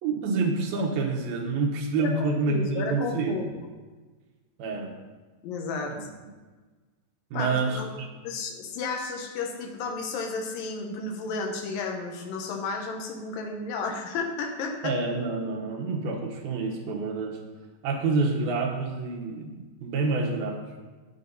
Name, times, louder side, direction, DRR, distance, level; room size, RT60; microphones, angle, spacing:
voice 1, 0.0-3.4 4.6-4.9 5.9-6.0 7.3-8.1 14.8-17.4 17.8-20.6, right 3 dB, 90° right, 1 dB, 3.1 m, -28 dB
voice 2, 2.0-3.5 5.4-6.1 7.3-7.9 8.2-14.9, left 4 dB, 75° left, 2 dB, 2.8 m, -32 dB
9.7 x 8.3 x 4.1 m, 1.3 s
omnidirectional pair, 4.1 m